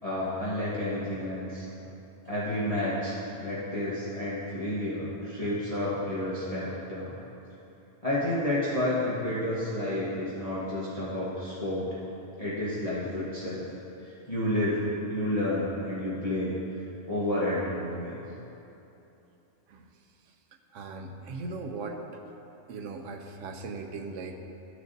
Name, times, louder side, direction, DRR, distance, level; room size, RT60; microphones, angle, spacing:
voice 1, 0.0-1.7 2.3-7.1 8.0-11.9 12.4-13.6 14.0-16.5 17.0-18.2, left 1 dB, 30° left, -11 dB, 1.4 m, -30 dB
voice 2, 20.7-22.2 22.7-24.4, right 3 dB, 80° right, 4 dB, 1.0 m, -38 dB
14.0 x 6.5 x 2.7 m, 2.9 s
omnidirectional pair, 1.3 m